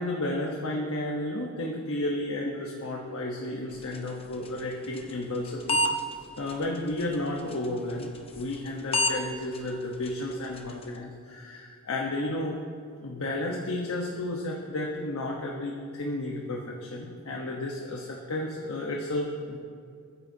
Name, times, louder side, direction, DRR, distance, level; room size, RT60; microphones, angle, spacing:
voice 1, 0.0-5.8 6.4-12.6 13.0-19.6, left 1 dB, 90° left, -1 dB, 1.2 m, -32 dB
sound 1, 3.7-11.0, equal, 25° left, 0.8 m, -34 dB
21.0 x 9.7 x 2.8 m, 2.2 s
head